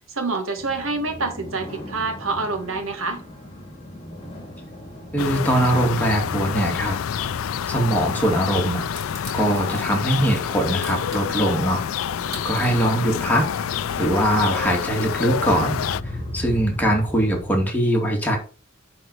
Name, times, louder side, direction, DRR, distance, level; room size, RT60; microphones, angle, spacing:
voice 1, 0.1-3.2 12.6-12.7, right 3 dB, 80° right, 1.6 m, -27 dB
sound 1, 0.5-17.7, left 1 dB, 30° left, 2.1 m, -38 dB
voice 2, 5.1-7.0 7.7-8.8 9.3-11.8 12.4-15.8 16.3-18.4, right 1 dB, 10° left, 2.4 m, -22 dB
sound 2, 5.2-16.0, left 8 dB, 80° left, 0.4 m, -27 dB
Crushing, 9.0-15.7, equal, 15° right, 5.2 m, -42 dB
10.5 x 4.2 x 4.9 m
head